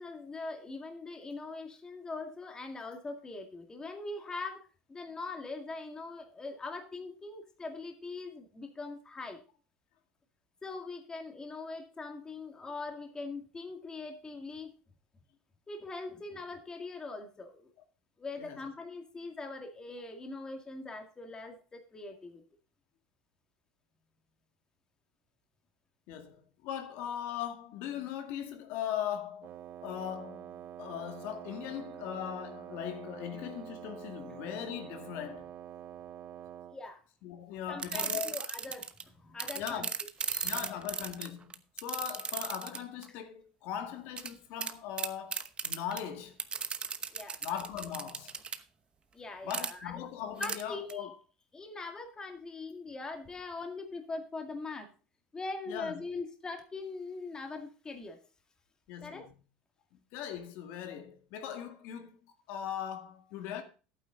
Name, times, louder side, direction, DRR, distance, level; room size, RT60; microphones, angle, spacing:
voice 1, 0.0-9.4 10.6-14.8 15.7-17.7 18.2-22.4 36.7-37.0 37.7-39.9 40.3-40.5 47.1-47.4 49.1-50.0 50.4-51.1 51.5-54.9 55.3-58.2 59.0-59.3, left 3 dB, 15° left, 2.1 m, -42 dB
voice 2, 26.1-29.5 29.8-35.5 37.2-38.4 39.6-39.9 40.4-46.4 47.4-48.4 49.4-51.2 55.7-55.9 58.9-59.3 60.1-62.2 62.5-63.6, left 9 dB, 65° left, 1.9 m, -39 dB
Wind instrument woodwind instrument, 29.4-36.8, right 11 dB, 45° right, 0.6 m, -47 dB
sound 1, 37.8-39.0 39.4-43.0 44.2-44.3 44.6-44.7 45.0-46.0 46.4-48.6 49.5-49.7 50.4-50.6 50.9-51.0, right 6 dB, 25° right, 0.9 m, -35 dB
11.5 x 9.1 x 3.8 m
supercardioid pair, 125°, 4 cm